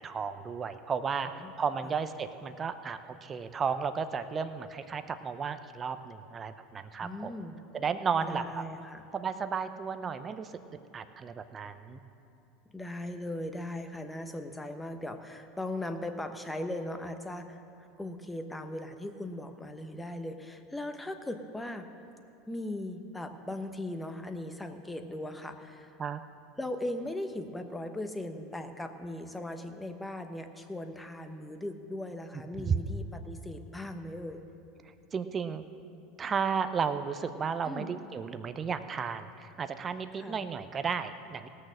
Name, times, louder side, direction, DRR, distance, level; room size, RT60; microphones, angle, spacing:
voice 1, 0.0-7.3 7.7-8.4 9.1-10.5 10.9-12.0 26.0-26.2 32.7-32.8 35.1-35.6 36.2-41.5, right 6 dB, 30° right, 10 dB, 0.7 m, -33 dB
voice 2, 7.0-7.6 8.2-9.0 12.7-21.9 22.5-26.0 26.6-34.4 37.6-38.0 40.2-40.4, left 1 dB, 10° left, 7 dB, 1.0 m, -38 dB
17.5 x 6.5 x 6.4 m, 2.7 s
hypercardioid pair, 90°, 0 cm